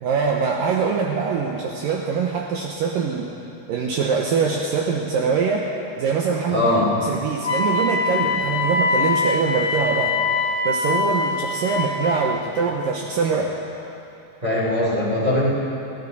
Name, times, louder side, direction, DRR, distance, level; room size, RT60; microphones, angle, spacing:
voice 1, 0.0-3.3 3.7-5.7 6.0-6.7 7.0-10.2 10.6-13.5, right 5 dB, 80° right, 0 dB, 2.0 m, -23 dB
voice 2, 6.5-6.9 14.4-15.5, left 1 dB, 10° right, -6 dB, 2.2 m, -20 dB
Wind instrument woodwind instrument, 7.4-12.2, left 4 dB, 30° left, 1.8 m, -23 dB
20.0 x 15.0 x 4.1 m, 2.8 s
omnidirectional pair, 5.2 m